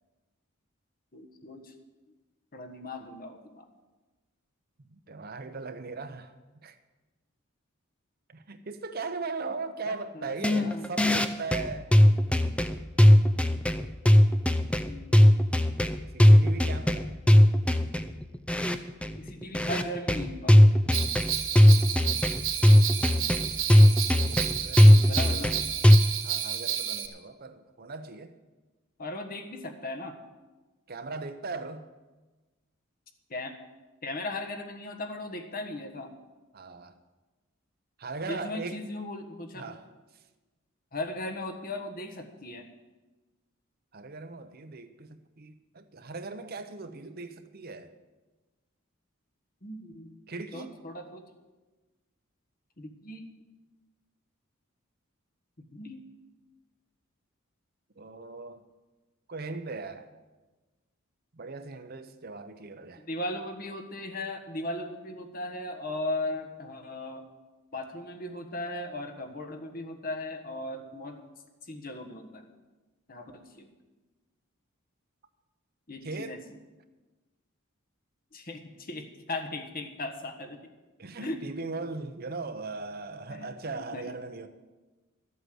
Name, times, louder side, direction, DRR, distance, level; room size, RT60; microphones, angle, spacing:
voice 1, 1.1-1.7 2.5-3.6 9.8-10.9 14.9-15.2 19.2-20.6 25.1-25.5 29.0-30.1 33.3-33.5 34.0-36.1 38.2-39.7 40.9-42.7 49.6-50.2 50.5-51.2 52.8-53.2 55.7-56.0 63.0-67.2 67.7-71.2 71.6-72.4 73.1-73.7 75.9-76.4 78.3-80.7 81.2-81.4 83.3-83.5 83.7-84.1, left 2 dB, 45° left, 4 dB, 1.4 m, -37 dB
voice 2, 5.1-6.3 6.6-6.8 8.3-11.9 13.7-13.9 16.1-17.1 24.2-25.5 26.2-28.3 30.9-31.9 36.5-36.9 38.0-38.8 39.5-39.8 43.9-47.9 50.3-50.7 58.0-58.6 59.3-60.1 61.3-63.0 76.0-76.4 81.0-84.5, right 3 dB, 45° right, 9 dB, 0.8 m, -39 dB
sound 1, 10.4-26.0, left 1 dB, 5° left, 0.5 m, -19 dB
Bell, 20.9-27.1, right 10 dB, 70° right, 1.3 m, -31 dB
12.5 x 8.2 x 7.8 m, 1.2 s
head